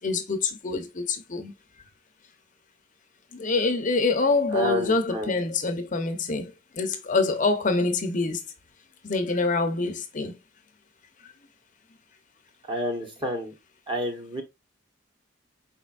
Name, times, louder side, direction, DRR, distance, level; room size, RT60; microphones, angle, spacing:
voice 1, 0.0-1.5 3.3-6.5 6.8-8.4 9.0-10.3, left 3 dB, 40° left, 0.7 m, -25 dB
voice 2, 4.5-5.3 12.7-13.5 13.9-14.4, equal, 25° right, 1.0 m, -29 dB
4.9 x 4.3 x 2.3 m
head